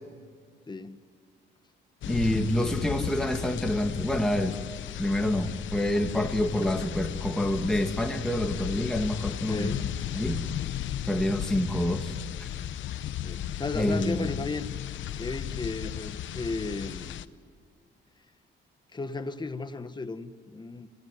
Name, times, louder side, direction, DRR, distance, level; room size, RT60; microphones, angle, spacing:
voice 1, 0.7-1.0 9.3-9.9 13.2-14.7 15.1-17.2 18.9-20.9, left 3 dB, 20° left, 1.3 m, -35 dB
sound 1, 2.0-17.2, left 11 dB, 75° left, 0.8 m, -35 dB
voice 2, 2.1-4.6 5.0-9.7 10.1-10.4 11.1-12.1 12.4-12.5 13.8-14.3, left 1 dB, 5° left, 2.0 m, -27 dB
25.0 x 17.5 x 9.7 m
cardioid pair, 90°, 20 cm